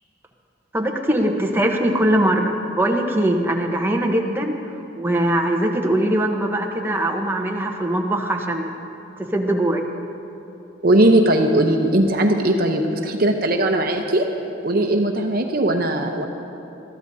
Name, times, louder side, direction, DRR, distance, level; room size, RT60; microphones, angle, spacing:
voice 1, 0.7-4.5 5.0-8.7 9.2-9.8, right 1 dB, 10° right, 1 dB, 1.0 m, -21 dB
voice 2, 10.8-14.3 14.6-16.3, right 1 dB, 50° right, 3 dB, 0.8 m, -19 dB
22.0 x 14.0 x 2.7 m, 3.0 s
head